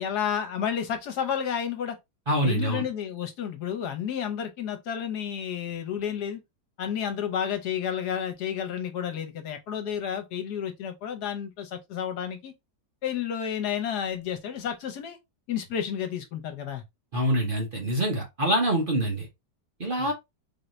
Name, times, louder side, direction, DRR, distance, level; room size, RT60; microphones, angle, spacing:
voice 1, 0.0-2.0 2.4-6.4 6.8-12.5 13.0-15.2 15.5-16.8 19.0-19.1 20.0-20.1, left 8 dB, 75° left, 1.4 m, -31 dB
voice 2, 2.3-2.9 17.1-19.3 19.8-20.1, right 1 dB, 40° right, 1.0 m, -25 dB
3.9 x 2.8 x 3.1 m
omnidirectional pair, 1.8 m